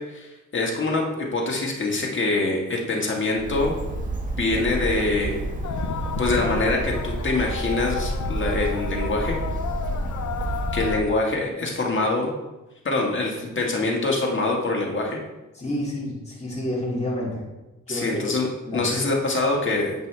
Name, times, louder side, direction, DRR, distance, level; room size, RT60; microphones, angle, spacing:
voice 1, 0.0-3.7 4.4-5.4 6.2-9.4 10.7-12.3 12.8-15.2 17.9-19.9, left 2 dB, 40° left, -1 dB, 1.6 m, -24 dB
Bird, 3.4-11.0, right 1 dB, 25° right, 1.2 m, -29 dB
sound 1, 5.6-11.0, left 8 dB, 75° left, 0.5 m, -33 dB
voice 2, 15.5-17.4 17.9-18.2 18.6-19.2, left 1 dB, 20° left, -5 dB, 2.3 m, -29 dB
7.8 x 5.3 x 3.3 m, 1.0 s
cardioid pair, 70°, 30 cm